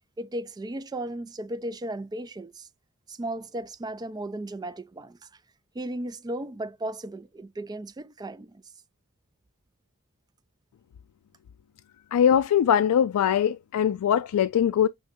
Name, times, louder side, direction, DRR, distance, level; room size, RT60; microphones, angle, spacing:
voice 1, 0.2-2.7 3.1-5.2 5.7-8.6, right 1 dB, 20° right, 0.4 m, -35 dB
voice 2, 12.1-14.9, left 9 dB, 90° left, 0.3 m, -22 dB
6.3 x 3.1 x 2.7 m
head